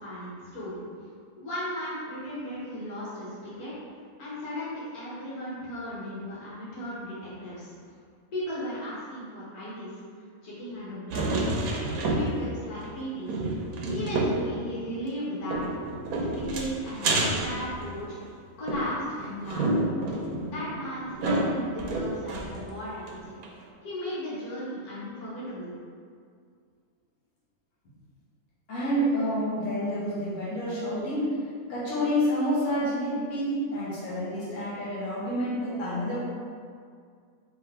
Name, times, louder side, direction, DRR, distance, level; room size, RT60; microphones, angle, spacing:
voice 1, 0.0-0.8 1.4-3.7 4.2-7.7 8.3-9.9 10.4-11.6 12.0-13.3 13.9-15.6 16.2-18.2 18.6-19.8 20.4-23.4 23.8-25.7, equal, 85° left, -9 dB, 1.7 m, -36 dB
sound 1, 11.1-12.6 12.8-12.9 13.3-14.5 15.5-18.2 18.7-22.7 23.1-23.2 23.4-23.5, right 2 dB, 85° right, 1.1 m, -29 dB
voice 2, 28.7-31.3 31.7-36.2, equal, 60° left, -10 dB, 1.6 m, -28 dB
3.9 x 3.3 x 3.5 m, 2.1 s
omnidirectional pair, 1.5 m